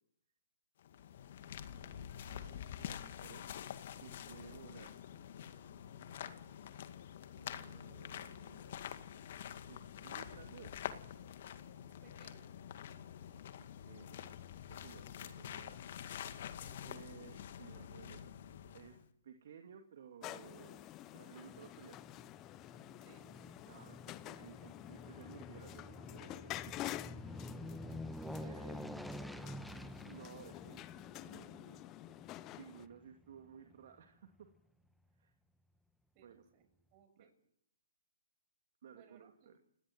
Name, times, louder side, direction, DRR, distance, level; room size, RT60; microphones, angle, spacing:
sound 1, 0.8-19.0, left 9 dB, 50° left, 2.1 m, -47 dB
voice 1, 1.6-3.5 4.0-5.0 7.3-8.7 9.7-10.7 13.3-14.3 14.7-16.0 16.8-18.3 18.7-20.9 21.1-22.0 23.6-27.4 28.4-28.8 30.0-30.9 31.1-31.8 32.6-34.5 35.2-35.3 36.2-36.4 37.2-37.3 38.8-39.6, right 8 dB, 55° right, 5 dB, 2.3 m, -56 dB
voice 2, 11.9-12.5 16.6-16.8 23.0-23.5 24.4-24.7 27.7-28.0 28.3-29.9 36.1-37.3 38.9-39.5, right 6 dB, 30° right, 8 dB, 6.7 m, -64 dB
sound 2, 20.2-32.9, left 15 dB, 25° left, 0.9 m, -49 dB
Aircraft, 21.5-34.0 34.4-34.5, left 1 dB, ahead, 1.4 m, -49 dB
30.0 x 18.0 x 7.8 m, 0.75 s
figure-of-eight pair, 125°, 0 cm